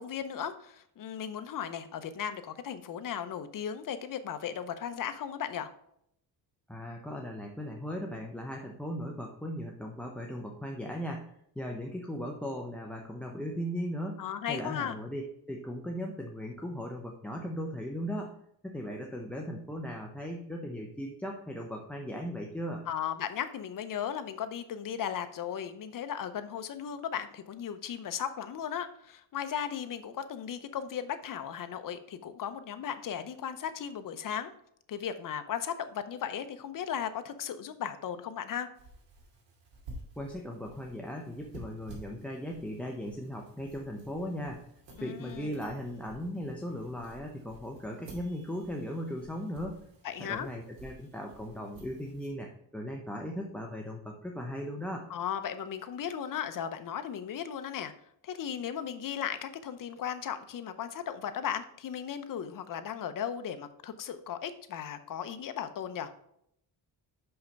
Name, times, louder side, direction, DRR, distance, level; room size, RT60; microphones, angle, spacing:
voice 1, 0.0-5.7 14.2-15.0 22.9-34.5 34.9-38.7 45.0-45.6 50.0-50.5 55.1-57.9 58.2-66.1, left 8 dB, 50° left, 10 dB, 0.8 m, -36 dB
voice 2, 6.7-11.3 11.6-18.3 18.6-22.8 40.2-44.6 45.0-49.8 50.2-55.1, equal, 5° left, 1 dB, 0.7 m, -38 dB
sound 1, 38.7-52.3, right 1 dB, 80° right, 2.6 m, -52 dB
5.7 x 5.6 x 5.2 m, 0.73 s
cardioid pair, 125°, 43 cm